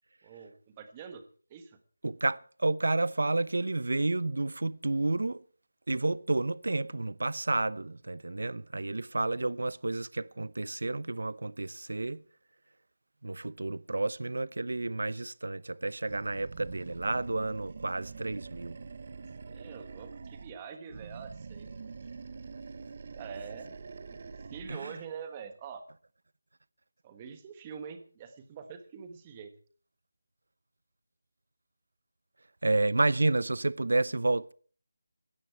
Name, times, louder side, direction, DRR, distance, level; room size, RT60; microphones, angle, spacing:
voice 1, 0.2-1.2 1.5-1.8 19.5-21.8 23.1-23.8 24.1-25.8 27.0-29.5, right 6 dB, 15° right, 1.3 m, -45 dB
voice 2, 2.0-5.4 5.9-12.2 13.2-18.8 24.7-24.9 32.6-34.5, right 2 dB, 75° right, 0.8 m, -30 dB
Animal, 16.1-20.6 20.9-24.8, right 4 dB, 30° right, 0.9 m, -45 dB
18.0 x 13.5 x 4.6 m
figure-of-eight pair, 180°, 0 cm